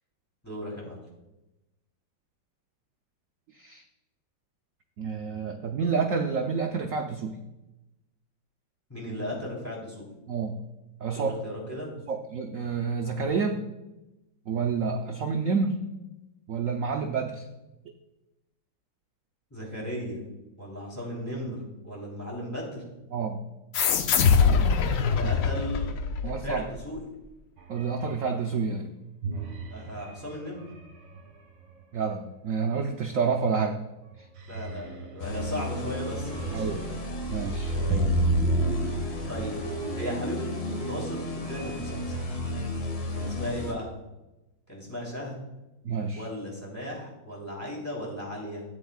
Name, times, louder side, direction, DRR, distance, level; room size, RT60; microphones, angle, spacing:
voice 1, 0.4-1.0 8.9-10.1 11.1-11.9 19.5-20.2 20.6-22.8 25.0-25.9 26.3-27.0 29.7-30.6 34.5-36.7 37.7-38.1 39.3-39.6 39.9-42.2 43.1-43.9 44.7-45.4 46.1-48.6, equal, 10° left, -4 dB, 3.2 m, -36 dB
voice 2, 5.0-7.3 10.3-10.6 11.0-11.3 12.1-13.6 14.5-15.8 16.5-17.4 23.1-23.4 25.2-25.3 26.2-26.6 27.7-28.9 31.9-33.8 36.5-37.0 37.3-37.7 45.8-46.2, right 5 dB, 85° right, 4 dB, 0.7 m, -29 dB
sound 1, 23.7-26.8, left 6 dB, 75° left, 0.7 m, -23 dB
sound 2, 27.6-28.4 29.2-31.9 33.5-33.8 34.1-37.1 37.9-42.7, right 4 dB, 65° right, 1.9 m, -37 dB
sound 3, 35.2-43.7, equal, 55° left, 1.8 m, -30 dB
14.0 x 8.6 x 2.3 m, 0.99 s
omnidirectional pair, 2.1 m